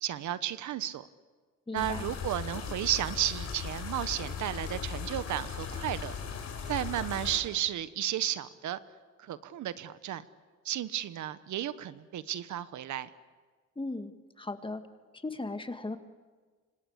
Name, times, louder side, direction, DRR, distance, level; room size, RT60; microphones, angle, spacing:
voice 1, 0.0-1.1 1.7-6.1 6.7-8.8 9.2-10.3 10.6-13.1, right 11 dB, 75° right, 14 dB, 1.1 m, -33 dB
voice 2, 1.7-2.1 13.8-14.8 15.1-16.0, left 2 dB, 15° left, 8 dB, 1.9 m, -37 dB
sound 1, 1.8-7.4, left 6 dB, 60° left, 5.4 m, -38 dB
26.5 x 25.5 x 8.1 m, 1.5 s
cardioid pair, 90°, 30 cm